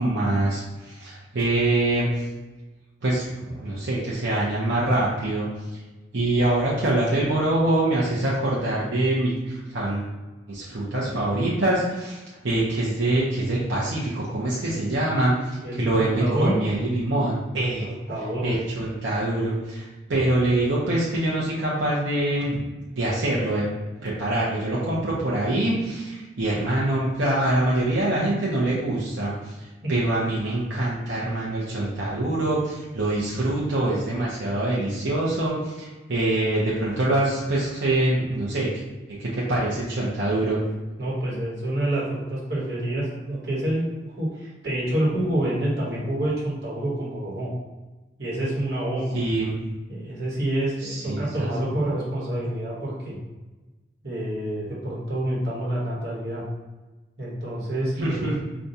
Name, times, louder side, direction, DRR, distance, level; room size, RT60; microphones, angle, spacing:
voice 1, 0.0-2.3 3.0-5.8 6.1-10.1 10.5-17.9 18.4-22.6 23.0-29.5 29.9-38.7 39.1-40.6 49.1-49.6 50.8-51.5 58.0-58.4, right 1 dB, 85° right, -7 dB, 0.8 m, -24 dB
voice 2, 15.6-16.6 17.8-18.5 29.8-29.9 41.0-47.5 48.2-49.2 49.9-53.2 54.0-56.4 57.2-58.4, right 1 dB, 60° right, -6 dB, 1.2 m, -27 dB
5.0 x 2.3 x 2.7 m, 1.2 s
head